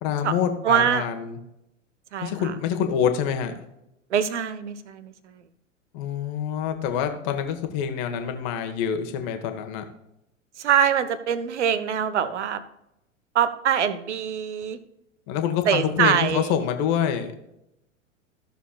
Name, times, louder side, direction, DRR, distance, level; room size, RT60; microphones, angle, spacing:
voice 1, 0.0-1.4 2.2-3.5 5.9-9.8 15.3-17.3, left 8 dB, 35° left, 7 dB, 1.4 m, -26 dB
voice 2, 0.6-1.0 2.1-2.3 4.1-5.4 10.6-12.6 13.3-14.8 15.6-16.6, right 8 dB, 60° right, 13 dB, 1.1 m, -23 dB
14.5 x 6.9 x 2.3 m, 0.84 s
figure-of-eight pair, 95°, 40 cm